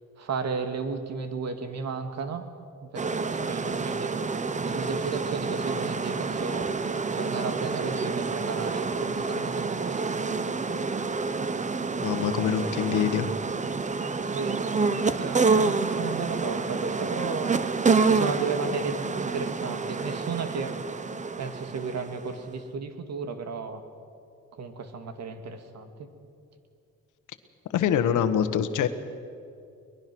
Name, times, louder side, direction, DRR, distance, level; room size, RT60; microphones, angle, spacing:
voice 1, 0.2-2.4 2.9-4.4 4.6-6.7 7.1-10.5 14.2-20.8 21.4-23.8 24.5-26.1, right 5 dB, 60° right, 8 dB, 2.1 m, -34 dB
Neals bee yard, 3.0-22.5, right 4 dB, 25° right, 0.9 m, -28 dB
voice 2, 12.0-13.3 27.7-28.9, left 9 dB, 80° left, 10 dB, 1.3 m, -25 dB
23.0 x 21.0 x 6.2 m, 2.5 s
cardioid pair, 90°, 30 cm